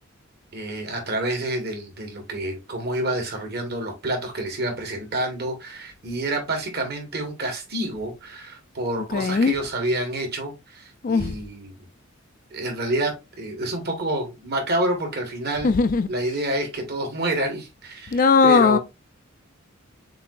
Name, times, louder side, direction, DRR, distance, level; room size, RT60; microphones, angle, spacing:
voice 1, 0.5-11.7 12.5-15.7 16.1-18.8, right 1 dB, 50° right, 1.5 m, -28 dB
voice 2, 9.1-9.5 11.0-11.4 15.6-16.1 18.1-18.8, left 4 dB, 40° left, 0.3 m, -18 dB
6.9 x 2.8 x 2.4 m
head